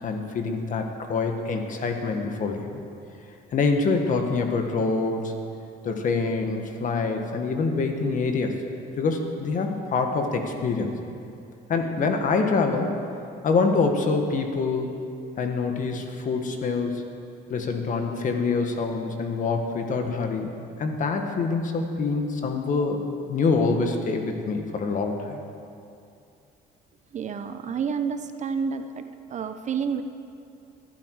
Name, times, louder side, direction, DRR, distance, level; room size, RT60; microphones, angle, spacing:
voice 1, 0.0-2.8 3.5-5.3 5.8-8.6 9.0-11.0 11.7-12.9 13.4-14.9 15.4-17.1 17.5-20.5 20.8-23.0 23.3-25.4, left 4 dB, 50° left, 4 dB, 1.8 m, -25 dB
voice 2, 27.1-29.0 29.3-30.0, right 6 dB, 45° right, 8 dB, 0.9 m, -29 dB
20.5 x 12.0 x 4.9 m, 2.6 s
cardioid pair, 110°, 17 cm